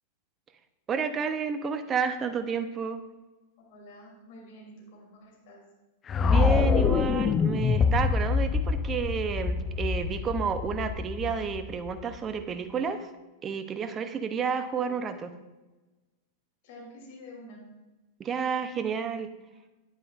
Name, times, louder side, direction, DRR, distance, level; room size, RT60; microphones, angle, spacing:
voice 1, 0.9-3.0 6.2-13.1 13.4-15.3 18.2-19.3, right 6 dB, 25° right, 9 dB, 0.8 m, -30 dB
voice 2, 3.7-5.6 14.8-15.1 16.6-17.6, left 1 dB, 60° left, -2 dB, 3.2 m, -48 dB
sound 1, 6.1-12.2, left 5 dB, 25° left, 0.4 m, -26 dB
9.8 x 9.1 x 2.6 m, 1.1 s
hypercardioid pair, 100°, 0 cm